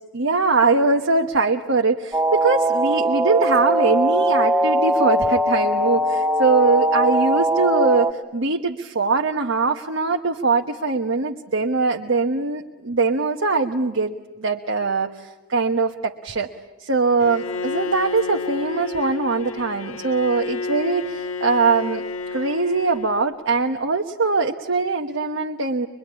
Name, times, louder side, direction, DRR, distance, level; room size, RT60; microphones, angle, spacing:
voice 1, 0.1-16.5 16.8-22.0 22.3-25.9, right 3 dB, 70° right, 3 dB, 1.2 m, -22 dB
sound 1, 2.1-8.1, right 1 dB, 10° right, 0.9 m, -20 dB
Bowed string instrument, 17.2-23.5, left 4 dB, 85° left, 1.5 m, -31 dB
24.5 x 23.0 x 9.8 m, 1.1 s
head